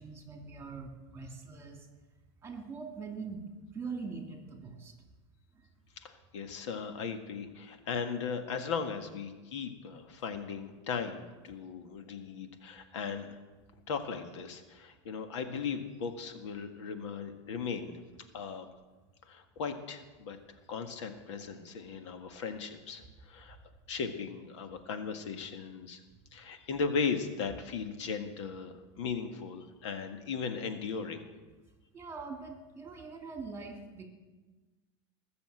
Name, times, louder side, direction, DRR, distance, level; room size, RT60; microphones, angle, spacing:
voice 1, 0.0-1.9 2.4-3.4 3.7-4.9 31.9-34.1, right 4 dB, 15° right, 3 dB, 2.4 m, -42 dB
voice 2, 6.0-13.4 13.9-17.9 18.3-18.7 19.3-20.4 20.7-23.6 23.9-26.0 26.3-31.2, left 5 dB, 80° left, 7 dB, 1.7 m, -37 dB
20.0 x 7.0 x 7.9 m, 1.2 s
supercardioid pair, 140°, 15 cm